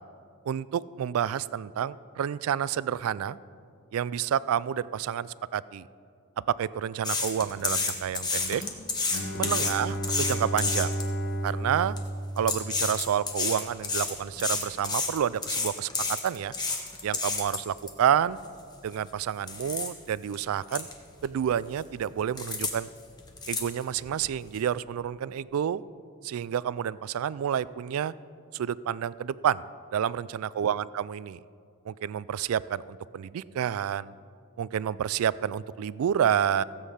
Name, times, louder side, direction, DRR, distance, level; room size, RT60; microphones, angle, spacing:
voice 1, 0.5-3.4 3.9-5.8 6.6-8.6 9.4-10.9 11.4-12.0 12.4-16.5 17.0-18.4 18.8-20.9 21.2-22.9 23.5-25.8 26.2-28.1 28.5-29.6 29.9-31.4 31.9-34.1 34.6-36.6, right 9 dB, 80° right, 19 dB, 0.3 m, -29 dB
sound 1, 7.0-11.1 11.7-12.0 12.4-17.9 18.4-18.5 18.9-19.1 19.5-19.9 20.3-20.4 20.7-20.9 21.2-21.8 22.4-22.7 23.0-24.1 24.5-24.6, left 4 dB, 20° left, 1.1 m, -30 dB
Bowed string instrument, 9.1-13.0, right 1 dB, 55° left, 1.0 m, -33 dB
16.0 x 8.2 x 5.6 m, 2.3 s
head